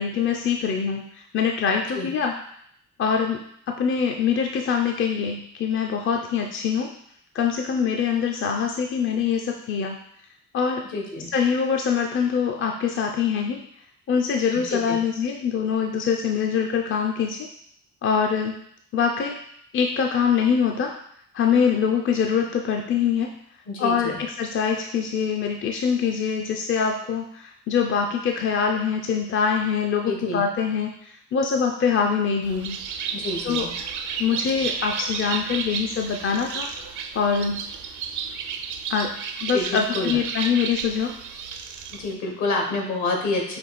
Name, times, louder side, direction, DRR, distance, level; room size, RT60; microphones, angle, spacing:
voice 1, 0.0-2.3 3.0-6.9 7.3-10.0 10.5-10.8 11.3-13.6 14.1-17.5 18.0-18.6 18.9-19.4 19.7-21.0 21.3-23.4 23.8-32.8 33.4-33.7 34.2-36.7 37.1-37.7 38.9-39.1 39.4-41.2, left 6 dB, 40° left, 3 dB, 0.5 m, -24 dB
voice 2, 10.9-11.3 14.5-15.0 23.7-24.2 30.0-30.4 33.1-33.7 39.5-40.2 41.9-43.6, left 2 dB, 70° left, 1 dB, 1.3 m, -28 dB
Bird, 32.4-42.1, right 6 dB, 75° right, 0.6 m, -32 dB
5.3 x 2.5 x 4.0 m, 0.68 s
cardioid pair, 90°, 30 cm